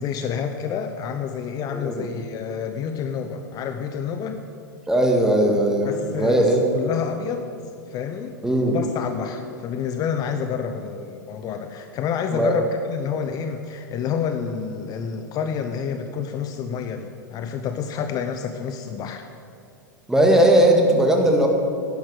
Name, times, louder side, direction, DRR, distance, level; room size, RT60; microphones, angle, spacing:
voice 1, 0.0-4.4 5.8-6.5 6.7-7.5 7.9-8.4 8.6-19.3, left 7 dB, 35° left, 7 dB, 0.8 m, -29 dB
voice 2, 1.7-2.0 4.9-5.9 6.2-6.6 8.4-8.8 12.3-12.6 20.1-21.5, right 1 dB, 5° right, 1 dB, 2.1 m, -18 dB
11.0 x 10.5 x 6.5 m, 2.5 s
hypercardioid pair, 95°, 11 cm